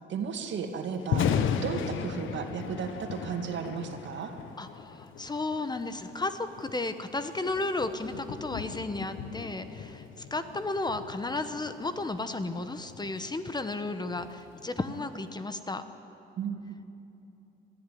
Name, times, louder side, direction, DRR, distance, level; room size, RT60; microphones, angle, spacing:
voice 1, 0.1-4.3 16.4-16.8, right 6 dB, 70° right, 5 dB, 2.2 m, -34 dB
Thunder, 1.0-15.1, left 7 dB, 80° left, 1.2 m, -37 dB
voice 2, 4.6-15.8, left 2 dB, 20° left, 10 dB, 1.1 m, -33 dB
22.0 x 14.0 x 9.4 m, 3.0 s
cardioid pair, 90°, 20 cm